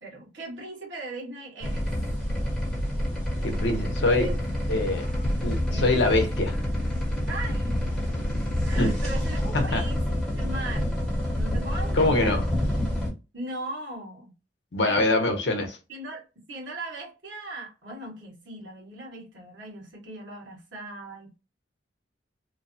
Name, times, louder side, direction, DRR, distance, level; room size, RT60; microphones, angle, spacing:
voice 1, 0.0-1.9 4.1-4.3 5.7-6.2 7.3-7.8 8.6-10.0 10.4-12.4 13.3-14.3 14.8-15.3 15.9-21.4, right 2 dB, 75° right, 1.6 m, -38 dB
sound 1, 1.6-13.1, left 1 dB, 5° left, 1.0 m, -27 dB
voice 2, 3.4-4.3 4.7-5.1 5.4-6.5 8.8-8.9 9.5-9.8 11.9-12.5 14.7-15.8, left 2 dB, 65° left, 0.7 m, -24 dB
3.1 x 2.0 x 2.6 m
head